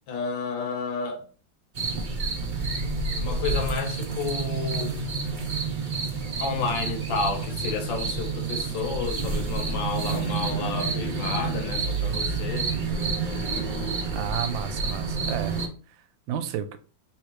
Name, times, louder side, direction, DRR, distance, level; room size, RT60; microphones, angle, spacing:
voice 1, 0.1-1.3 3.2-4.9 6.4-12.7, left 4 dB, 75° left, 1.6 m, -31 dB
sound 1, 1.8-15.7, right 4 dB, 45° right, 0.6 m, -29 dB
voice 2, 14.1-15.6 15.9-16.8, right 9 dB, 75° right, 1.3 m, -32 dB
3.6 x 3.2 x 4.7 m
omnidirectional pair, 2.2 m